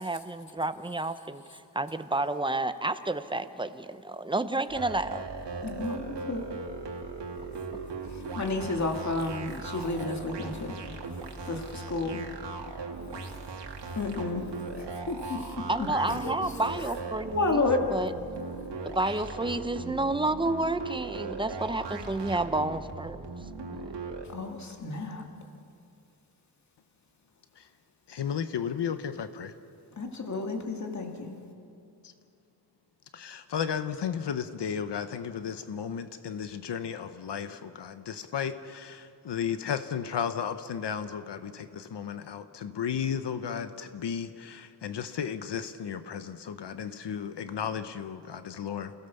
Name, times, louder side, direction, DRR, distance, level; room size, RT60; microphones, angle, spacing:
voice 1, 0.0-1.4 1.7-5.2 15.7-18.1 18.8-23.3 23.8-23.9, right 2 dB, 10° right, 11 dB, 0.8 m, -30 dB
sound 1, 4.7-24.3, right 4 dB, 90° right, 2.3 m, -39 dB
voice 2, 5.6-6.5 8.3-10.7 11.5-11.6 11.9-12.2 14.0-14.4 14.8-15.7 16.1-16.3 17.3-17.9 24.3-25.2 30.0-31.3, left 3 dB, 40° left, 3 dB, 2.5 m, -31 dB
voice 3, 28.1-29.5 33.1-48.9, left 7 dB, 80° left, 10 dB, 1.0 m, -34 dB
29.5 x 17.0 x 7.0 m, 2.6 s
wide cardioid pair, 140°, 41 cm